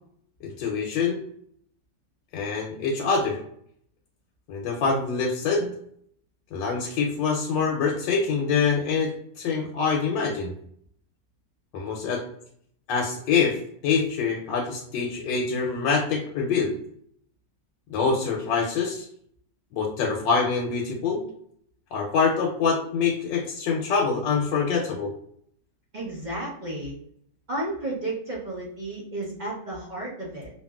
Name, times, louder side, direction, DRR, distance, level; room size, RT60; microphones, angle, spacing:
voice 1, 0.4-1.2 2.3-3.4 4.5-5.7 6.5-10.5 11.7-12.2 12.9-16.8 17.9-19.1 19.7-21.2 21.9-25.1, left 5 dB, 80° left, 0 dB, 1.2 m, -25 dB
voice 2, 25.9-27.0 27.5-30.5, right 1 dB, 55° right, -5 dB, 0.5 m, -32 dB
2.9 x 2.5 x 2.2 m, 0.67 s
omnidirectional pair, 1.9 m